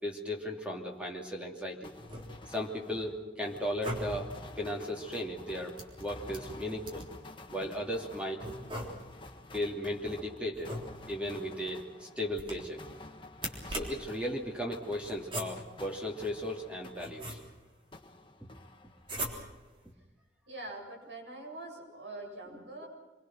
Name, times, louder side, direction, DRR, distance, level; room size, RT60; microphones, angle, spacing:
voice 1, 0.0-1.9 2.5-4.3 4.6-7.1 7.5-8.4 9.5-10.8 11.1-12.8 13.7-17.4 22.5-22.6, equal, 5° right, 0 dB, 2.7 m, -36 dB
sound 1, 1.8-17.6 17.9-19.3, left 2 dB, 25° left, 1.7 m, -50 dB
sound 2, 2.0-2.7 3.6-4.4 5.8-7.2 8.4-9.3 10.5-11.3 12.3-12.9 13.3-14.2 15.0-15.8 16.6-17.7 19.0-19.7, equal, 30° right, 3.6 m, -41 dB
voice 2, 20.5-22.9, right 2 dB, 75° right, 0 dB, 7.7 m, -44 dB
27.0 x 23.0 x 6.2 m, 1.2 s
head